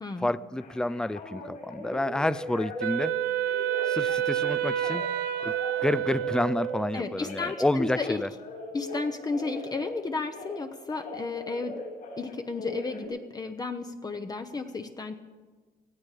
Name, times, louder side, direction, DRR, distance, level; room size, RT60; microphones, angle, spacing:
voice 1, 0.2-3.1 3.9-5.1 5.4-5.5 5.8-8.3, left 1 dB, 5° left, 18 dB, 0.4 m, -29 dB
Telephone, 0.6-3.1 3.5-5.0 5.3-6.8 7.2-10.6 10.9-13.0, left 2 dB, 60° left, 6.5 m, -41 dB
Wind instrument woodwind instrument, 2.8-7.1, right 11 dB, 70° right, 0.9 m, -29 dB
voice 2, 6.9-8.2 8.7-11.8 12.2-15.2, left 3 dB, 20° left, 6 dB, 0.9 m, -33 dB
18.5 x 14.5 x 5.0 m, 1.4 s
cardioid pair, 110°, 17 cm